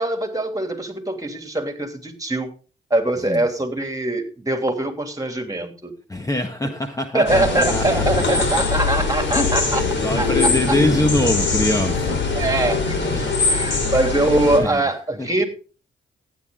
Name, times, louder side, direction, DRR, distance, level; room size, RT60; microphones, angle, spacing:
voice 1, 0.0-2.5 2.9-5.9 7.1-9.8 10.2-10.3 12.3-15.5, right 2 dB, 20° right, 5 dB, 3.1 m, -22 dB
voice 2, 6.1-8.2 8.5-8.6 9.3-9.5 10.0-12.2 13.0-13.3 14.2-14.8 15.2-15.3, left 1 dB, 20° left, 5 dB, 1.6 m, -24 dB
sound 1, 7.3-14.6, left 4 dB, 70° left, 4.3 m, -22 dB
15.0 x 9.4 x 3.9 m, 0.38 s
cardioid pair, 55°, 19 cm